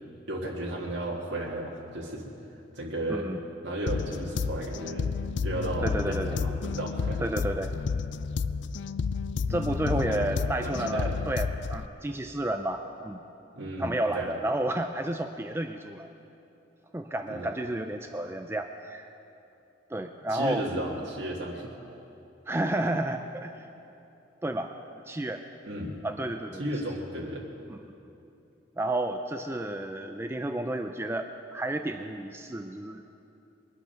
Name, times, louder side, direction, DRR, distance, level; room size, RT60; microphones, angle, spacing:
voice 1, 0.3-2.3 2.7-3.3 3.6-5.1 5.4-7.2 9.9-11.2 13.5-14.3 17.3-17.5 20.3-21.7 25.6-26.0 26.6-27.4, right 1 dB, 70° right, -4 dB, 1.7 m, -34 dB
sound 1, 3.9-11.9, left 5 dB, 70° left, 0.4 m, -31 dB
voice 2, 5.8-6.4 7.2-7.7 9.5-13.2 13.8-16.1 16.9-19.1 19.9-20.7 22.5-23.6 24.4-24.7 25.1-25.4 26.0-26.6 27.7-27.8 28.8-33.0, right 1 dB, 15° right, 6 dB, 0.4 m, -31 dB
22.0 x 8.4 x 5.8 m, 2.8 s
head